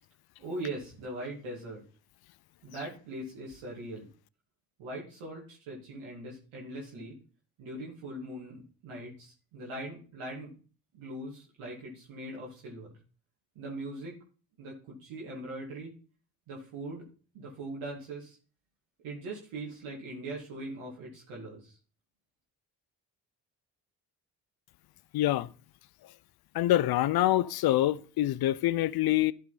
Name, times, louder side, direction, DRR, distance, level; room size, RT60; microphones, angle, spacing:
voice 1, 0.4-1.8 2.6-4.1 4.8-7.2 7.6-10.6 10.9-12.9 13.6-14.2 14.6-15.9 16.5-17.1 17.3-18.4 19.0-21.8, right 1 dB, 75° right, 2.3 m, -41 dB
voice 2, 25.1-25.5 26.5-29.3, left 14 dB, 50° left, 0.6 m, -25 dB
11.5 x 4.9 x 4.1 m
hypercardioid pair, 45°, 49 cm